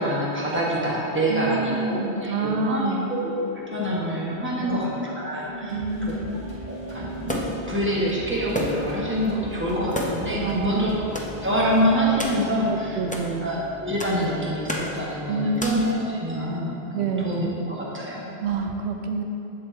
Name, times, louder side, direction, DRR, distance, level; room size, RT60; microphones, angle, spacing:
voice 1, 0.0-5.8 6.0-6.1 6.7-11.0 11.4-13.0 13.4-13.6 13.8-18.3, equal, 10° right, -6 dB, 1.1 m, -26 dB
voice 2, 1.3-3.0 4.6-4.8 5.6-6.3 10.4-10.9 12.7-13.5 15.3-15.9 16.9-17.4 18.4-19.2, right 4 dB, 80° right, 4 dB, 0.9 m, -27 dB
Organ / Church bell, 1.6-15.8, left 2 dB, 60° left, 0.8 m, -41 dB
sound 1, 5.7-12.4, equal, 45° left, 1.9 m, -43 dB
sound 2, 7.3-7.7 8.5-9.0 9.2-9.3 9.9-10.4 11.1-11.3 12.2-12.4 13.1-13.3 14.0-14.2 14.7-15.0 15.6-15.9, left 1 dB, 10° left, 0.4 m, -30 dB
7.8 x 7.5 x 2.8 m, 2.8 s
omnidirectional pair, 1.1 m